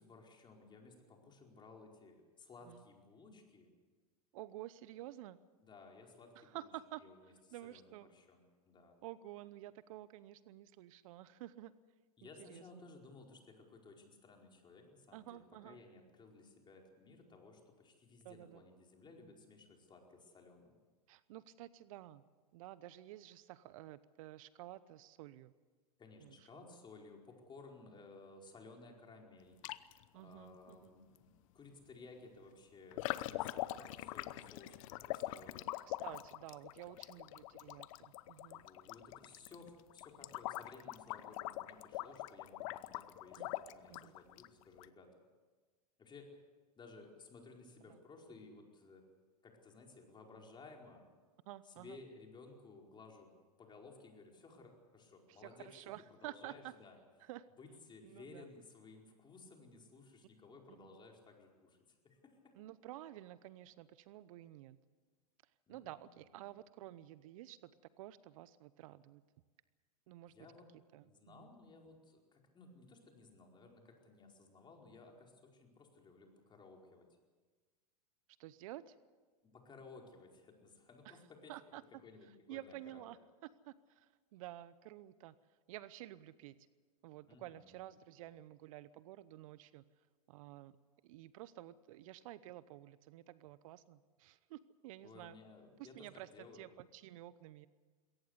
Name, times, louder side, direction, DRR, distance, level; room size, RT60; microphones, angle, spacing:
voice 1, 0.0-3.7 5.6-6.7 6.9-7.2 7.6-9.0 12.2-20.8 26.0-29.8 30.1-36.0 37.1-37.3 38.5-45.2 46.0-46.4 46.8-49.1 49.4-51.1 51.7-53.3 53.6-55.7 56.2-57.0 57.6-62.5 65.7-66.0 70.3-70.6 71.1-77.1 79.4-81.5 82.0-83.1 87.3-87.8 95.0-96.7, left 3 dB, 25° left, 1 dB, 4.8 m, -57 dB
voice 2, 4.3-5.4 6.3-8.1 9.0-11.7 12.2-12.8 15.1-15.8 18.2-18.6 21.1-22.2 22.5-25.5 26.2-26.8 30.1-30.9 35.9-38.7 43.4-43.5 43.9-44.2 47.9-48.0 51.5-52.0 55.3-56.7 57.2-57.5 58.0-58.5 60.7-61.0 62.5-64.8 65.4-67.7 68.0-69.2 70.1-70.3 70.9-71.5 78.4-79.0 81.0-81.2 81.5-81.8 82.2-86.7 87.0-90.8 91.0-95.4 95.8-97.7, right 14 dB, 60° right, 17 dB, 0.8 m, -52 dB
sound 1, 29.6-30.0 31.2-31.3 32.9-44.9, left 16 dB, 55° left, 0.9 m, -43 dB
22.0 x 18.0 x 8.1 m, 1.4 s
hypercardioid pair, 100°, 20 cm